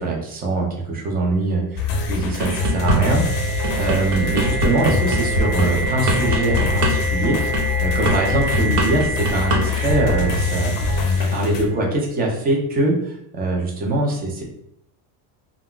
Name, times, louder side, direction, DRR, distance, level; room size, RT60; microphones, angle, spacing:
voice 1, 0.0-13.0 13.3-14.4, right 2 dB, 20° right, -1 dB, 0.3 m, -23 dB
sound 1, 1.8-11.7, left 3 dB, 45° left, 0.5 m, -24 dB
sound 2, 2.0-11.8, right 1 dB, 55° right, 0.7 m, -29 dB
sound 3, 2.2-3.0 3.4-9.6 9.9-10.2, right 1 dB, 70° right, 1.2 m, -23 dB
2.3 x 2.1 x 3.6 m, 0.76 s
cardioid pair, 150°, 48 cm